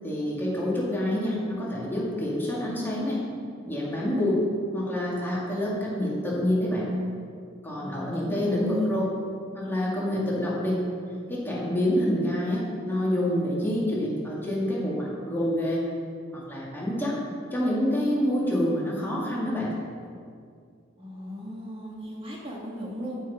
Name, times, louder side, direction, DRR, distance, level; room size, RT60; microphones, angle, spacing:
voice 1, 0.0-3.2 3.7-4.4 4.7-6.9 7.6-9.0 9.6-10.8 11.3-15.8 16.3-17.2 17.5-19.7, left 1 dB, 10° left, -6 dB, 2.2 m, -27 dB
voice 2, 7.8-8.9 21.0-23.2, equal, 30° right, -4 dB, 1.7 m, -37 dB
14.0 x 5.6 x 4.8 m, 2.3 s
head